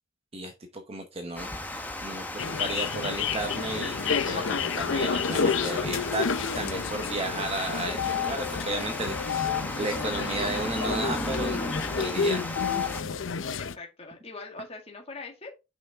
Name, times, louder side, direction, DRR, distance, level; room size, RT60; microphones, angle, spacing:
voice 1, 0.3-9.5 9.8-11.6 11.9-12.5, right 2 dB, 30° right, 0.9 m, -34 dB
Water, 1.4-13.0, left 1 dB, 10° left, 0.8 m, -35 dB
sound 1, 2.4-13.8, left 6 dB, 65° left, 0.5 m, -30 dB
voice 2, 13.6-15.5, left 3 dB, 30° left, 2.0 m, -43 dB
5.8 x 5.7 x 3.5 m
head